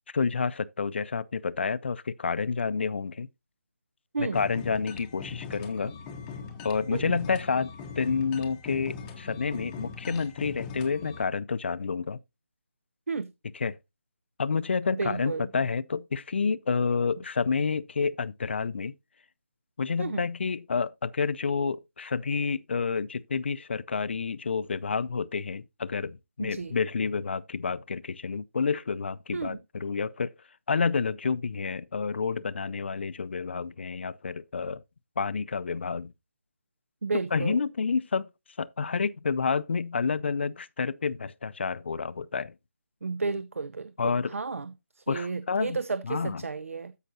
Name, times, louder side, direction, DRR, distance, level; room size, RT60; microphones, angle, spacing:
voice 1, 0.1-3.3 4.2-5.9 6.6-7.7 8.0-12.2 13.5-13.8 14.4-18.9 19.8-30.3 30.7-34.8 35.2-36.1 37.3-38.3 38.6-42.5 44.0-44.3 45.1-46.4, left 5 dB, 50° left, 0.5 m, -29 dB
sound 1, 4.3-11.2, left 5 dB, 10° left, 0.8 m, -41 dB
voice 2, 14.9-15.6 20.0-20.2 26.4-26.8 29.3-29.6 37.0-37.6 43.0-46.9, right 4 dB, 65° right, 0.6 m, -33 dB
13.5 x 5.7 x 2.7 m
figure-of-eight pair, 165°, 8 cm